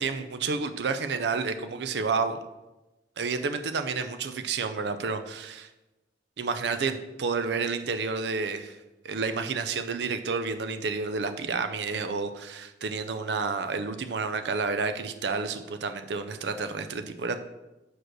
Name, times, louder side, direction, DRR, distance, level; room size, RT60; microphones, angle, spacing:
voice 1, 0.0-2.4 3.2-5.7 6.4-8.8 9.0-17.4, right 4 dB, 70° right, 9 dB, 0.5 m, -30 dB
6.2 x 5.0 x 6.1 m, 1.0 s
head